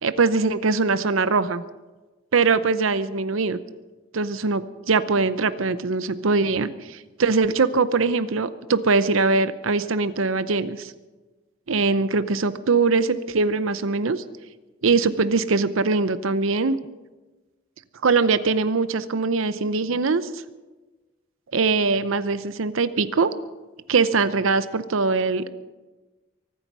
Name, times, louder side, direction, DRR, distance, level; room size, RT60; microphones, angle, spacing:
voice 1, 0.0-1.6 2.3-3.6 4.1-10.9 11.7-14.2 14.8-16.8 18.0-20.4 21.5-23.3 23.9-25.5, right 4 dB, 80° right, 13 dB, 0.7 m, -22 dB
24.0 x 9.5 x 6.2 m, 1.2 s
head